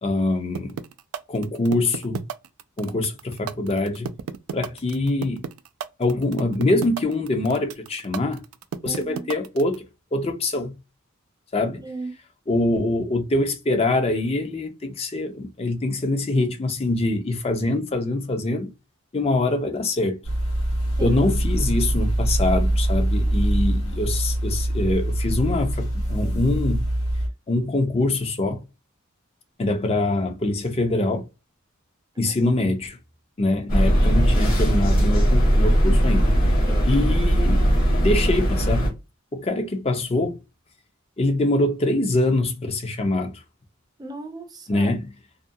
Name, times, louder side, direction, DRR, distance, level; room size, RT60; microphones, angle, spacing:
voice 1, 0.0-0.8 1.3-2.2 2.8-4.1 4.5-5.4 6.0-8.4 8.8-9.8 10.1-10.8 11.5-11.8 12.5-18.7 19.1-20.2 21.0-26.9 27.5-28.6 29.6-31.2 32.2-33.0 33.4-36.3 36.9-37.6 38.0-38.9 39.3-40.4 41.2-43.4 44.7-45.2, left 2 dB, 30° left, 0.5 m, -24 dB
sound 1, 0.5-9.8, right 7 dB, 85° right, 0.3 m, -32 dB
voice 2, 8.9-9.3 11.8-12.1 21.0-21.2 32.4-32.5 36.7-36.9 44.0-44.9, right 3 dB, 20° right, 0.5 m, -35 dB
sound 2, 20.2-27.3, right 1 dB, 70° left, 1.1 m, -23 dB
sound 3, 33.7-38.9, equal, 45° left, 1.1 m, -19 dB
2.5 x 2.2 x 2.6 m
head